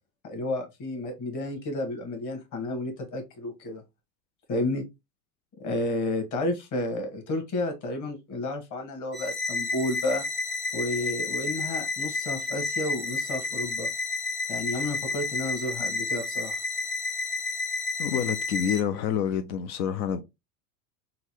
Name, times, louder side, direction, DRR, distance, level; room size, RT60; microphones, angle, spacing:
voice 1, 0.2-3.8 4.5-4.8 5.6-10.2 10.7-13.9 14.5-16.6, left 2 dB, 35° left, 1.4 m, -31 dB
sound 1, 9.1-18.8, left 3 dB, 20° left, 0.3 m, -31 dB
voice 2, 18.0-20.2, left 8 dB, 85° left, 0.6 m, -28 dB
3.9 x 2.2 x 3.0 m
supercardioid pair, 120°, 50 cm